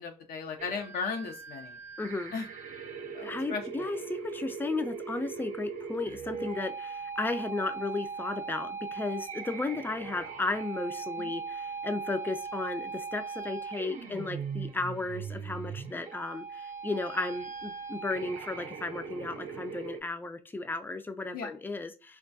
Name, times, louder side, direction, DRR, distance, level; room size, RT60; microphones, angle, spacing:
voice 1, 0.0-1.8 2.3-2.5 3.1-3.9 11.2-11.3 21.3-21.5, left 5 dB, 75° left, 5 dB, 0.6 m, -36 dB
sound 1, 0.6-20.0, right 5 dB, 50° right, 0.6 m, -40 dB
voice 2, 2.0-2.3 3.2-22.2, left 3 dB, 15° left, 9 dB, 0.3 m, -34 dB
2.2 x 2.2 x 2.5 m, 0.33 s
supercardioid pair, 70°, 16 cm